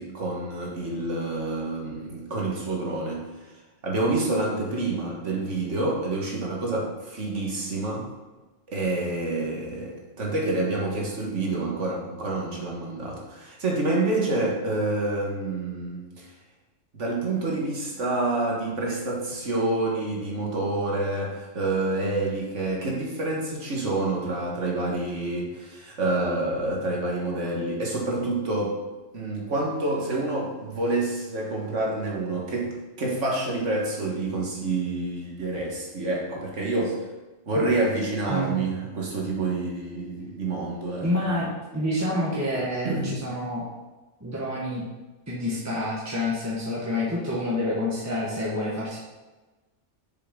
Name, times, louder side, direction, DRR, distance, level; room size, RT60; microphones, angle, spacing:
voice 1, 0.0-3.5 3.8-8.1 8.7-16.3 16.9-28.8 29.1-37.0 37.5-41.3 42.6-43.1, right 2 dB, 80° right, -2 dB, 1.9 m, -28 dB
voice 2, 38.3-38.6 41.0-41.5 41.7-43.6 44.2-44.8 45.3-49.0, left 1 dB, 15° right, -6 dB, 1.3 m, -28 dB
7.0 x 6.6 x 3.8 m, 1.2 s
omnidirectional pair, 1.2 m